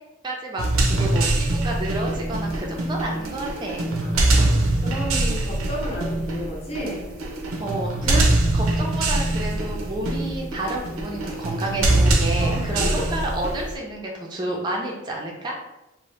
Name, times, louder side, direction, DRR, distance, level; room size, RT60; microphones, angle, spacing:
voice 1, 0.2-3.9 7.6-15.6, right 1 dB, 20° right, -1 dB, 0.4 m, -30 dB
sound 1, 0.6-13.7, right 2 dB, 85° right, 0.5 m, -23 dB
voice 2, 4.0-7.1 12.4-13.1, equal, 30° left, -4 dB, 0.7 m, -33 dB
2.7 x 2.0 x 3.1 m, 0.98 s
head